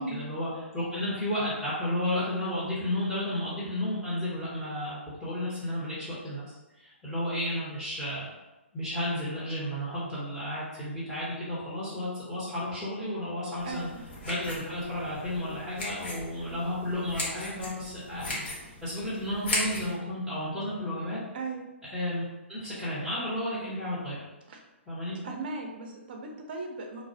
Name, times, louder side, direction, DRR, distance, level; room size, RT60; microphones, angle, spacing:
voice 1, 0.0-6.4 6.8-8.3 8.7-13.9 14.2-18.5 18.8-21.2 21.9-22.2 22.5-24.2 24.9-25.2, left 1 dB, ahead, -11 dB, 0.8 m, -32 dB
sound 1, 13.6-19.9, left 2 dB, 60° left, 0.9 m, -37 dB
voice 2, 13.6-14.0 21.3-21.6 24.5-24.6 25.2-27.1, right 3 dB, 50° right, 2 dB, 0.5 m, -37 dB
2.2 x 2.0 x 2.7 m, 1.0 s
figure-of-eight pair, 125°, 7 cm